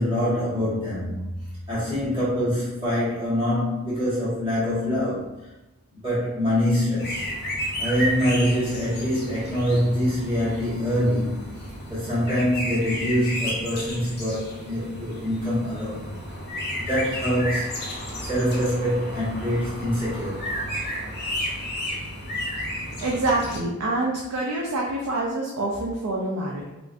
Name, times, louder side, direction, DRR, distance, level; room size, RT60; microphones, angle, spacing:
voice 1, 0.0-5.3 5.9-7.3 7.8-11.4 11.9-16.1 16.8-20.6, equal, 25° right, -10 dB, 1.1 m, -25 dB
sound 1, 7.0-23.6, equal, 45° left, 0.6 m, -32 dB
voice 2, 23.0-26.7, right 2 dB, 80° right, -2 dB, 0.4 m, -26 dB
3.4 x 2.5 x 2.4 m, 1.0 s
head